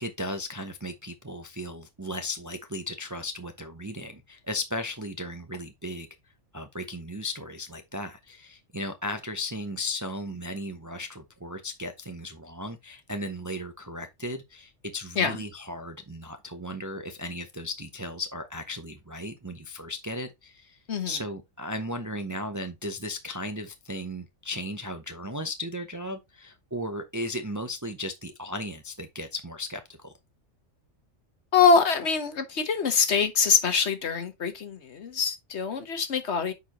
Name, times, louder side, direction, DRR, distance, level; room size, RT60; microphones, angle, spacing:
voice 1, 0.0-6.1 6.5-20.8 21.1-30.1, left 1 dB, 20° right, 0.5 m, -36 dB
voice 2, 31.5-36.5, left 5 dB, 65° left, 1.4 m, -24 dB
9.3 x 4.4 x 2.9 m
omnidirectional pair, 1.2 m